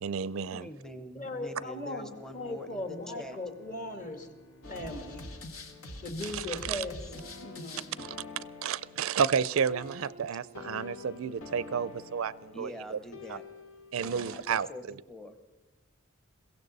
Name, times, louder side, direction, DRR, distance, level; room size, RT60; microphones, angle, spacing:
voice 1, 0.0-0.7 6.2-6.8 8.0-8.2 8.6-13.0 13.3-13.4 13.9-14.7, right 7 dB, 70° right, 19 dB, 0.4 m, -31 dB
voice 2, 0.5-3.4 12.5-13.5 14.3-15.5, left 1 dB, 5° left, 8 dB, 0.8 m, -45 dB
voice 3, 1.1-4.3 4.7-5.2 6.0-7.9, left 1 dB, 40° left, 7 dB, 1.6 m, -38 dB
Bowed string instrument, 1.5-6.7, equal, 65° left, 1.2 m, -59 dB
sound 1, 4.6-14.4, left 2 dB, 90° left, 1.6 m, -45 dB
22.0 x 16.0 x 4.0 m, 1.1 s
head